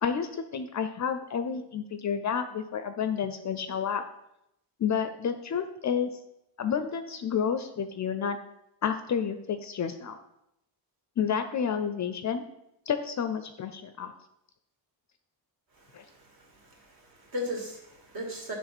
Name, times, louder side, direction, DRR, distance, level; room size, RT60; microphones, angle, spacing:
voice 1, 0.0-4.0 4.8-6.1 6.6-8.4 8.8-10.2 11.2-12.4 12.9-14.1 15.9-16.0, left 7 dB, 40° left, 9 dB, 0.5 m, -30 dB
voice 2, 15.7-18.5, left 1 dB, 55° right, -1 dB, 2.3 m, -38 dB
9.6 x 3.5 x 6.0 m, 0.83 s
wide cardioid pair, 175°, 44 cm